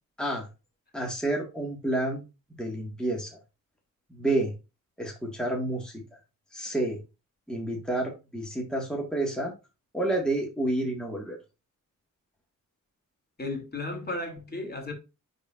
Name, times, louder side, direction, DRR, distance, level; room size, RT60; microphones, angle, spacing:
voice 1, 0.9-2.2 2.6-3.3 4.1-4.5 5.0-5.9 6.5-7.0 7.5-9.5 9.9-11.4, right 2 dB, ahead, 1.9 m, -29 dB
voice 2, 13.4-14.9, left 2 dB, 30° left, 2.8 m, -34 dB
10.0 x 4.3 x 2.5 m
cardioid pair, 85°, 32 cm